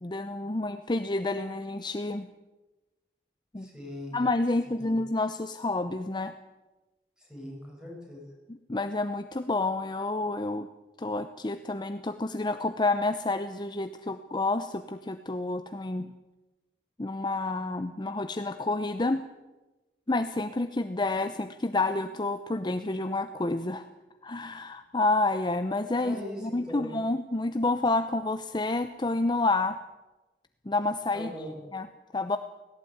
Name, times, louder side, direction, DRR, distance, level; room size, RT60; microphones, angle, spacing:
voice 1, 0.0-2.3 3.5-3.7 4.1-6.3 8.7-10.7 11.0-16.1 17.0-19.2 20.1-23.9 24.2-26.2 26.4-29.8 30.7-31.3 31.7-31.9 32.1-32.4, left 2 dB, 25° left, 9 dB, 0.7 m, -29 dB
voice 2, 3.6-4.2 4.8-5.0 7.2-8.2 26.0-26.9 31.1-31.6, left 1 dB, 5° right, -1 dB, 6.9 m, -40 dB
17.5 x 17.0 x 9.4 m, 1.1 s
head